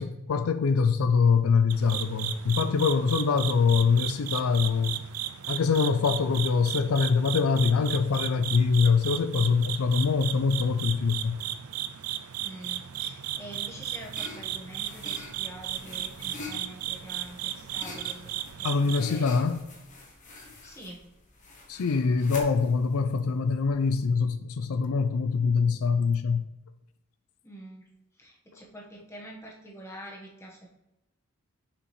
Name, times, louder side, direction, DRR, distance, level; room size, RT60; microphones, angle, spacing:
voice 1, 0.0-5.0 5.5-11.4 18.6-19.6 21.7-26.5, left 5 dB, 80° left, 0.4 m, -24 dB
sound 1, 1.7-19.0, right 11 dB, 85° right, 0.4 m, -35 dB
voice 2, 12.4-19.6 20.6-21.0 27.4-27.8 28.2-30.7, right 1 dB, 15° left, 1.2 m, -46 dB
sound 2, 13.5-23.9, left 3 dB, 35° left, 1.1 m, -45 dB
6.7 x 4.9 x 3.2 m
head